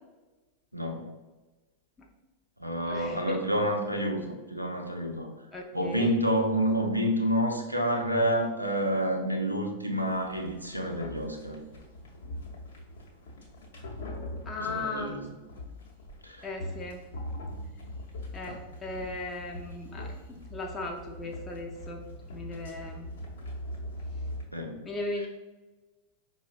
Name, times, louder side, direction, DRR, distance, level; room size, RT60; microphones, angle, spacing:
voice 1, 0.7-1.1 2.6-5.3 5.7-11.6 14.6-15.2 16.2-16.5 24.5-24.8, equal, 90° right, 2 dB, 0.4 m, -28 dB
voice 2, 2.9-3.4 5.5-6.2 14.5-15.3 16.4-17.0 18.3-22.0 22.3-23.1 24.8-25.3, left 2 dB, 20° left, 1 dB, 0.4 m, -37 dB
sound 1, 10.1-24.4, left 1 dB, 65° left, 0.7 m, -41 dB
4.9 x 2.1 x 2.5 m, 1.2 s
figure-of-eight pair, 90°, 0 cm